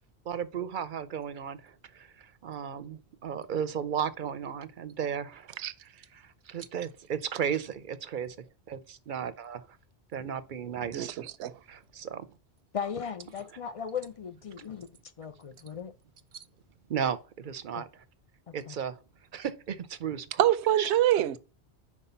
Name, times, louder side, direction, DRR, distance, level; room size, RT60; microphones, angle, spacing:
voice 1, 0.3-8.4 8.7-9.8 10.1-11.2 11.7-12.3 14.6-14.7 16.9-18.0 18.5-19.0 19.3-20.3 20.8-20.9, right 8 dB, 55° right, 0.7 m, -35 dB
voice 2, 10.9-11.6 20.4-21.4, right 12 dB, 80° right, 0.9 m, -25 dB
voice 3, 12.7-14.9 15.2-15.9 18.5-18.8, left 7 dB, 50° left, 0.4 m, -37 dB
5.5 x 4.7 x 5.5 m
omnidirectional pair, 1.1 m